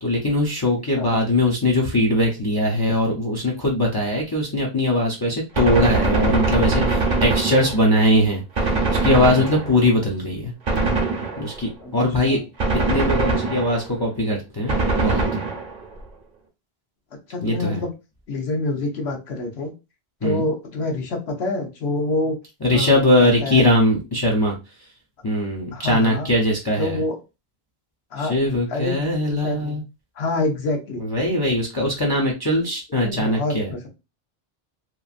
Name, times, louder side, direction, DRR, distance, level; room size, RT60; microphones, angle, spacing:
voice 1, 0.0-10.5 11.4-12.4 12.9-15.2 17.4-17.8 20.2-20.5 22.6-24.6 25.2-27.0 28.2-29.8 31.0-33.7, left 1 dB, 30° left, -2 dB, 0.5 m, -21 dB
Gunshot gunfire, 5.5-8.0 8.6-10.0 10.7-11.7 12.6-14.0 14.7-15.9, right 3 dB, 50° right, 0.9 m, -22 dB
voice 2, 17.3-17.9 18.3-19.7 20.2-22.4 22.7-23.6 25.7-26.3 26.7-27.2 28.1-28.4 28.7-29.8 30.2-31.1 33.0-33.9, left 2 dB, 85° left, 3 dB, 1.1 m, -26 dB
2.9 x 2.5 x 2.4 m, 0.27 s
omnidirectional pair, 1.1 m